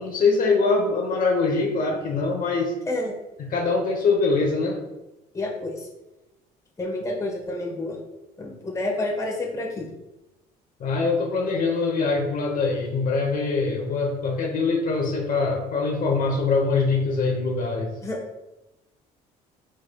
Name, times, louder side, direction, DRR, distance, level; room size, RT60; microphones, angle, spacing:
voice 1, 0.0-2.7 3.4-4.8 10.8-17.9, left 4 dB, 55° left, 0 dB, 0.9 m, -23 dB
voice 2, 5.3-5.9 6.8-8.0 8.4-9.9 18.0-18.2, left 2 dB, 20° left, -3 dB, 1.2 m, -29 dB
4.8 x 4.5 x 2.2 m, 0.98 s
cardioid pair, 110°, 17 cm